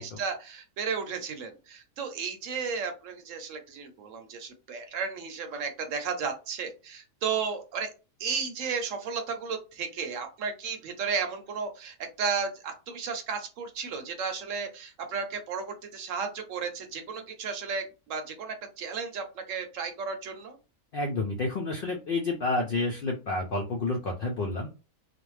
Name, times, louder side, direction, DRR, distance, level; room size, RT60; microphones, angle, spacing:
voice 1, 0.0-7.9 8.2-20.6, right 5 dB, 70° right, 6 dB, 0.9 m, -34 dB
voice 2, 20.9-24.7, left 2 dB, 85° left, 2 dB, 0.4 m, -29 dB
2.5 x 2.1 x 3.1 m, 0.31 s
omnidirectional pair, 1.5 m